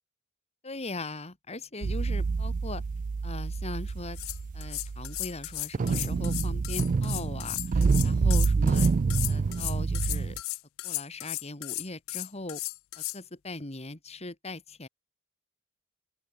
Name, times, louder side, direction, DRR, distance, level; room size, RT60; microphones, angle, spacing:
voice 1, 0.6-2.8 3.2-4.2 4.5-8.9 9.3-10.4 10.8-12.6 13.0-14.9, left 2 dB, 30° left, 2.1 m, -40 dB
sound 1, 1.8-10.4, right 4 dB, 40° right, 0.3 m, -27 dB
sound 2, 3.9-4.0 4.1-13.2, left 22 dB, 75° left, 0.3 m, -35 dB
open air
head